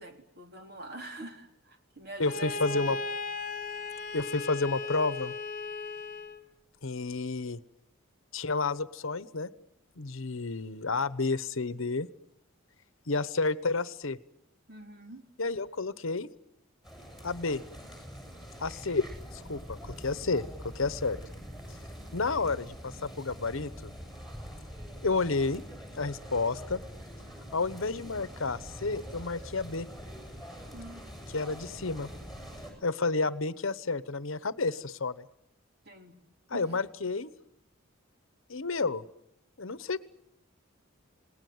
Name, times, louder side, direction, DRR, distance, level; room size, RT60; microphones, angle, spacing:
voice 1, 0.0-3.0 14.7-15.3 30.7-31.0 35.9-36.1 36.5-36.7, right 1 dB, 50° right, 4 dB, 3.7 m, -45 dB
voice 2, 2.2-3.0 4.1-5.3 6.8-7.6 8.3-9.5 10.0-12.1 13.1-14.2 15.4-16.3 17.2-17.6 18.6-19.0 19.3-21.2 22.1-23.9 25.0-25.6 26.0-26.8 27.5-29.9 31.3-32.1 32.8-35.3 36.5-37.3 38.5-39.0 39.6-40.0, left 3 dB, 70° left, 16 dB, 1.1 m, -30 dB
Bowed string instrument, 2.2-6.4, left 3 dB, 40° left, 1.7 m, -36 dB
sound 1, 16.8-32.7, equal, ahead, 7.7 m, -44 dB
28.0 x 19.0 x 9.6 m, 0.80 s
head